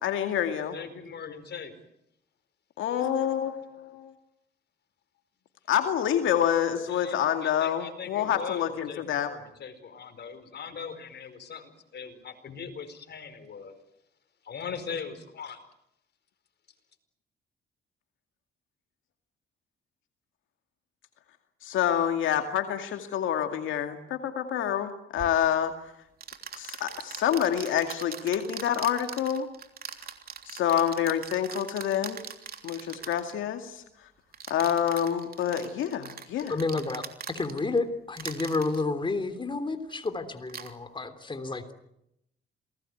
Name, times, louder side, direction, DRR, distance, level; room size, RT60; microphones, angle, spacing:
voice 1, 0.0-0.8 2.8-4.1 5.7-9.3 21.6-25.9 26.5-29.5 30.5-32.2 32.6-33.8 34.5-36.6, left 9 dB, 80° left, 6 dB, 2.3 m, -27 dB
voice 2, 0.7-1.7 6.9-13.7 14.4-15.6, left 6 dB, 55° left, 10 dB, 4.8 m, -40 dB
sound 1, 25.2-25.3 26.2-33.3 34.3-37.8 38.1-38.8 39.9-40.1 40.5-40.7, right 7 dB, 50° right, 3.3 m, -41 dB
voice 3, 36.5-37.0 37.3-41.7, left 3 dB, 25° left, 9 dB, 3.2 m, -30 dB
27.5 x 20.0 x 9.3 m, 0.79 s
cardioid pair, 90°, 20 cm